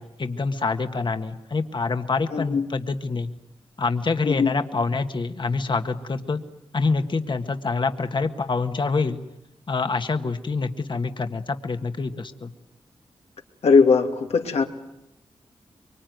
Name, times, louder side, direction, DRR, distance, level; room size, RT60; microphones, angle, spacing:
voice 1, 0.0-3.3 3.8-6.4 6.7-9.2 9.7-12.5, left 4 dB, 50° left, 7 dB, 1.7 m, -26 dB
voice 2, 2.3-2.6 4.2-4.5 13.6-14.6, left 5 dB, 85° left, 4 dB, 2.7 m, -19 dB
24.5 x 24.0 x 9.5 m, 0.83 s
cardioid pair, 70°, 10 cm